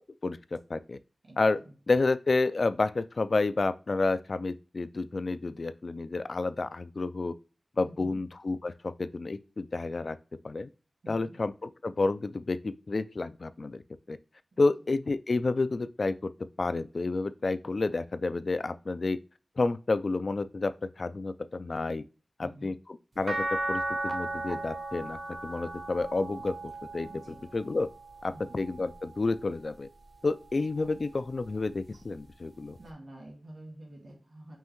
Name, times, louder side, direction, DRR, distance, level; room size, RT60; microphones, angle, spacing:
voice 1, 0.2-1.0 1.4-1.6 1.9-7.3 7.8-10.2 10.4-10.7 11.1-13.8 14.1-14.2 14.6-16.2 16.6-19.2 19.6-22.0 22.4-22.8 23.2-27.1 27.5-27.9 28.2-29.9 30.2-32.8, left 3 dB, 60° left, 0.3 m, -30 dB
voice 2, 1.2-1.7 7.9-8.2 11.0-11.4 22.4-22.8 27.1-27.3 28.3-28.6 32.8-34.6, right 1 dB, 80° right, 1.8 m, -48 dB
sound 1, 23.3-29.6 30.1-31.5 32.9-33.0, right 2 dB, 60° right, 0.7 m, -37 dB
5.4 x 2.7 x 3.0 m
cardioid pair, 50°, 0 cm